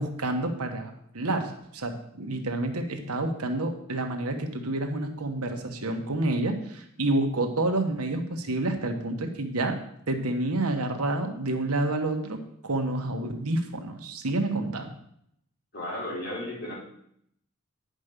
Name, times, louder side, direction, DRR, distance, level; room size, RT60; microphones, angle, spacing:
voice 1, 0.0-9.8 10.1-14.9, right 2 dB, 80° right, 5 dB, 1.3 m, -29 dB
voice 2, 15.7-16.7, left 1 dB, 50° left, -5 dB, 4.1 m, -34 dB
10.0 x 5.3 x 6.7 m, 0.72 s
head